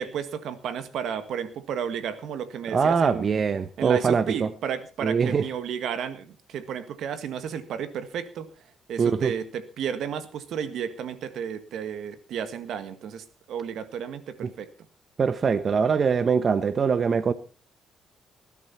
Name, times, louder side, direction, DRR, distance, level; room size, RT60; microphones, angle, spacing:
voice 1, 0.0-3.4 3.8-8.5 8.9-14.7, right 8 dB, 75° right, 1.7 m, -32 dB
voice 2, 2.7-4.5 5.0-5.5 9.0-9.3 14.4-14.5 15.2-17.3, right 6 dB, 45° right, 0.9 m, -23 dB
19.5 x 11.0 x 4.3 m
cardioid pair, 90°, 0 cm